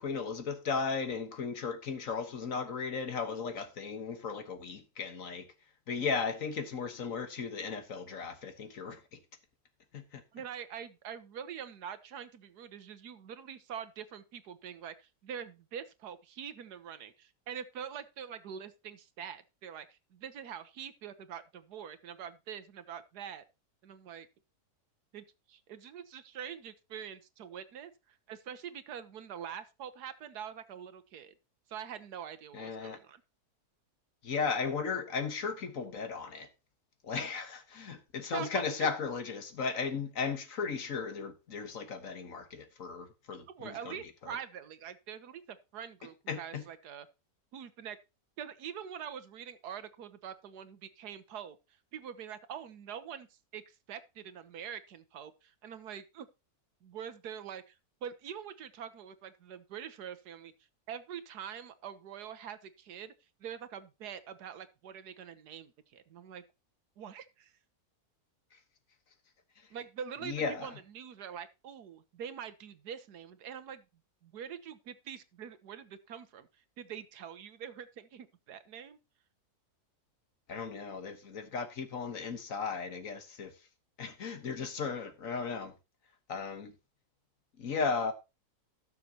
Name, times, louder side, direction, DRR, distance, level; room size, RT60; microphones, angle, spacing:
voice 1, 0.0-5.5 5.9-9.2 9.9-10.2 32.5-33.0 34.2-36.5 37.0-44.0 44.2-44.3 46.3-46.6 70.2-70.7 80.5-83.5 84.0-85.7 86.3-86.7 87.6-88.1, left 5 dB, 60° left, 1.7 m, -36 dB
voice 2, 10.3-23.4 23.8-24.3 25.1-31.3 31.7-33.2 38.3-38.6 43.5-47.1 47.5-48.0 48.4-51.6 51.9-56.3 56.8-60.5 60.9-63.1 63.4-66.4 67.0-67.5 69.7-73.8 74.2-76.5 76.8-79.0, right 8 dB, 85° right, 1.5 m, -44 dB
18.0 x 6.7 x 2.9 m
omnidirectional pair, 1.6 m